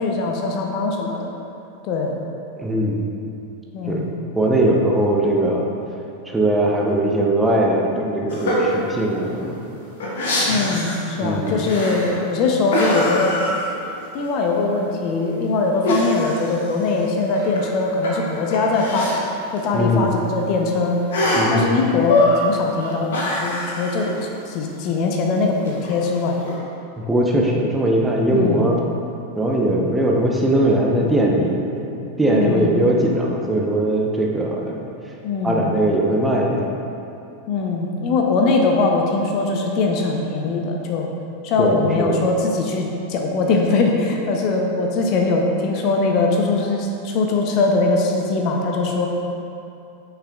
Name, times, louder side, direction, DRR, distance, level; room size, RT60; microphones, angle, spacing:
voice 1, 0.0-1.3 1.8-2.2 3.7-4.1 10.5-13.4 14.1-21.0 21.5-24.1 24.5-26.4 28.3-28.7 32.3-32.8 35.2-35.7 37.5-41.1 41.4-49.1, left 3 dB, 40° left, 2 dB, 0.6 m, -21 dB
voice 2, 2.6-3.0 3.9-5.7 6.3-9.6 11.2-11.6 19.7-20.1 21.4-21.7 27.0-28.8 29.4-31.8 32.2-34.9 35.4-36.7 41.6-42.2, right 1 dB, 10° right, -2 dB, 0.8 m, -20 dB
sound 1, 8.3-8.7 9.1-9.2 9.5-11.1 11.5-12.3 12.7-14.2 14.5-14.6 15.8-17.6 17.9-19.2 19.6-19.7 19.9-20.0 21.1-21.5 22.0-22.4 22.8-24.2 25.6-26.5, left 1 dB, 60° left, 1.3 m, -23 dB
8.4 x 5.7 x 2.3 m, 2.6 s
figure-of-eight pair, 90°, 0 cm